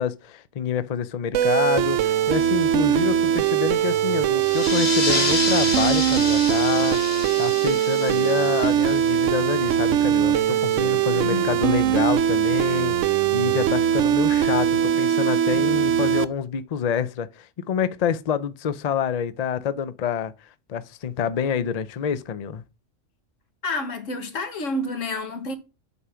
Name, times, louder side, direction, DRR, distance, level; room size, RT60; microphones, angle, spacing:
voice 1, 0.0-20.3 20.7-22.6, left 8 dB, 50° left, 0.5 m, -27 dB
sound 1, 1.3-16.3, right 10 dB, 80° right, 1.0 m, -21 dB
sound 2, 4.4-9.6, left 3 dB, 35° left, 1.5 m, -29 dB
voice 2, 11.1-11.6 15.5-15.9 23.6-25.5, left 2 dB, 80° left, 1.6 m, -30 dB
8.3 x 5.6 x 4.9 m
omnidirectional pair, 1.3 m